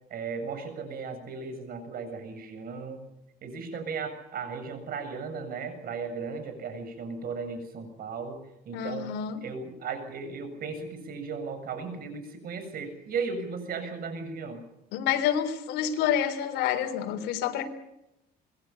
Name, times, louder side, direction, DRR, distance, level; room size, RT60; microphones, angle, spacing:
voice 1, 0.1-3.0 3.4-8.4 8.7-9.1 9.4-14.6, right 5 dB, 60° right, 9 dB, 7.4 m, -36 dB
voice 2, 8.7-9.4 14.9-17.7, left 9 dB, 85° left, 5 dB, 3.8 m, -28 dB
26.5 x 22.0 x 7.2 m, 0.87 s
cardioid pair, 110°, 17 cm